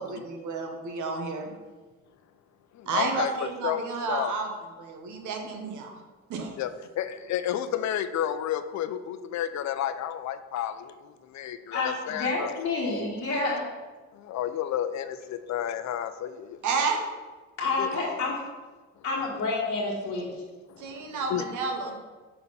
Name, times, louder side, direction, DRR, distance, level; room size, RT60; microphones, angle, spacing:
voice 1, 0.0-1.5 2.9-6.0 6.3-6.5 16.6-17.0 20.8-22.0, right 4 dB, 80° right, 3 dB, 1.1 m, -31 dB
voice 2, 2.9-3.3 3.6-3.8 4.1-4.3 6.6-6.7 7.0-10.9 11.3-12.5 14.2-16.6 17.8-17.9 21.3-21.4, left 10 dB, 65° left, 11 dB, 0.6 m, -31 dB
voice 3, 11.7-13.7 17.6-18.4 19.0-20.3, left 3 dB, 50° left, -6 dB, 1.4 m, -29 dB
5.6 x 4.2 x 5.5 m, 1.3 s
cardioid pair, 90°, 30 cm